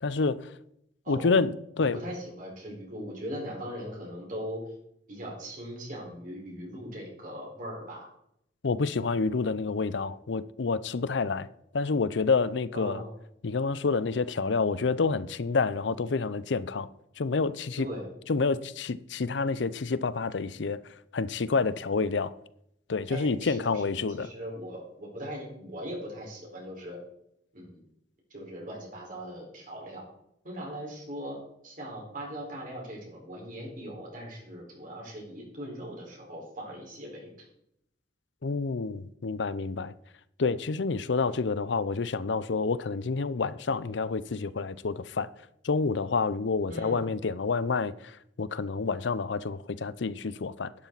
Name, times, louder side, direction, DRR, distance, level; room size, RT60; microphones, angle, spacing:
voice 1, 0.0-0.5 1.1-2.0 8.6-11.5 11.7-13.0 13.4-16.9 17.2-17.9 18.3-20.8 21.1-22.3 22.9-24.3 38.4-39.9 40.4-45.3 45.6-50.7, left 4 dB, 80° left, 0.6 m, -28 dB
voice 2, 1.8-4.7 5.1-8.1 12.7-13.1 17.8-18.1 23.1-27.0 27.5-27.8 28.3-30.0 30.4-31.4 31.6-37.5 46.7-47.1, equal, 50° right, 4.5 m, -40 dB
11.5 x 11.5 x 4.0 m
head